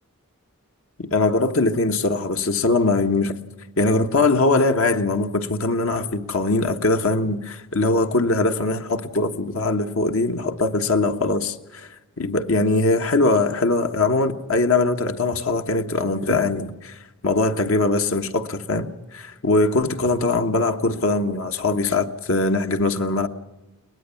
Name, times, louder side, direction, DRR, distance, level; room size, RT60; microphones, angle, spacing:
voice 1, 1.0-3.3 3.8-11.9 12.2-23.3, left 2 dB, 70° left, 1.3 m, -21 dB
22.5 x 19.5 x 7.0 m
head